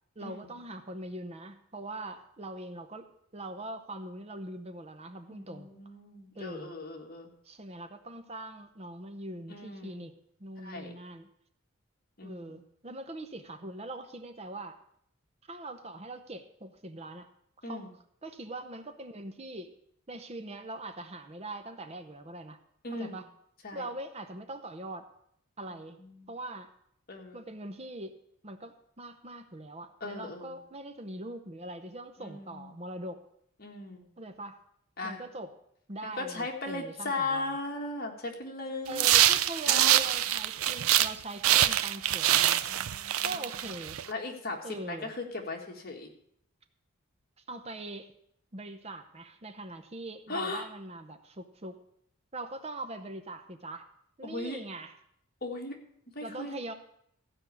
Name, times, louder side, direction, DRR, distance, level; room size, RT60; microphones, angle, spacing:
voice 1, 0.2-3.1 3.3-5.7 6.3-6.8 7.4-10.1 10.4-11.3 12.2-14.8 15.5-17.3 17.6-17.9 18.2-19.7 20.1-22.6 22.9-23.3 23.7-25.1 25.6-26.0 26.3-26.7 27.3-28.2 28.4-33.2 34.2-34.6 35.0-35.5 35.9-37.6 38.9-42.7 43.2-44.0 44.6-45.1 47.5-48.1 48.5-51.8 52.3-53.9 54.2-55.0 56.2-56.7, right 1 dB, 30° right, 8 dB, 0.7 m, -42 dB
voice 2, 5.3-7.3 9.5-10.0 10.6-10.9 12.2-12.6 17.6-17.9 22.8-23.2 23.6-23.8 26.0-26.3 27.1-27.4 30.0-30.5 32.2-32.7 33.6-34.1 35.0-35.2 36.0-39.1 39.7-40.1 42.6-43.4 44.1-46.1 50.3-50.7 54.2-54.6 55.4-55.8 56.2-56.5, left 2 dB, 45° left, 1 dB, 1.8 m, -37 dB
sound 1, 38.9-41.1 41.4-44.0, right 12 dB, 85° right, 0.5 m, -25 dB
15.0 x 5.4 x 8.3 m, 0.70 s
head